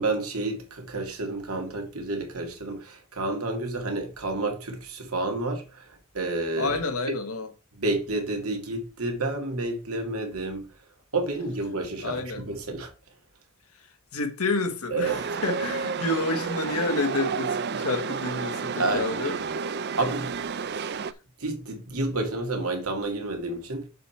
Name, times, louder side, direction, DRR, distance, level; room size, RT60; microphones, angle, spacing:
voice 1, 0.0-5.8 6.1-6.7 7.8-10.7 11.1-12.9 14.9-15.2 18.8-19.4 20.0-20.3 21.4-23.9, right 2 dB, 80° right, 2.2 m, -30 dB
voice 2, 6.6-7.5 12.0-12.5 14.1-19.4, left 2 dB, 80° left, 1.5 m, -29 dB
Chatter / Subway metro underground, 15.0-21.1, right 5 dB, 50° right, 0.5 m, -31 dB
6.9 x 6.2 x 4.3 m
head